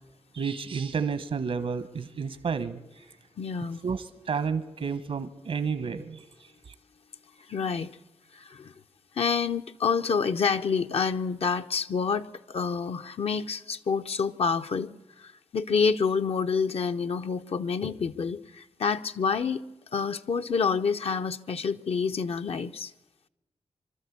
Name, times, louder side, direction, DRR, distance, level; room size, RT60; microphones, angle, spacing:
voice 1, 0.3-3.0 3.8-6.7, right 6 dB, 80° right, 1.1 m, -31 dB
voice 2, 3.4-3.8 7.5-7.9 8.3-8.7 9.2-14.9 15.2-19.6 19.9-22.9, left 5 dB, 70° left, 0.7 m, -28 dB
24.5 x 12.5 x 8.5 m
wide cardioid pair, 95°, 11 cm